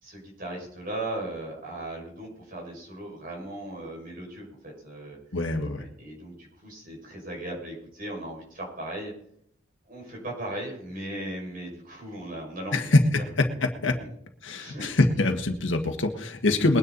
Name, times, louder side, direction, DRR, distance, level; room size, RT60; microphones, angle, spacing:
voice 1, 0.0-5.2 5.8-9.1 9.9-13.0 14.5-14.9, right 1 dB, 45° right, -1 dB, 5.9 m, -37 dB
voice 2, 5.3-5.8 12.7-14.0 14.4-16.8, left 2 dB, 70° left, 5 dB, 1.7 m, -24 dB
21.5 x 9.9 x 4.1 m, 0.70 s
head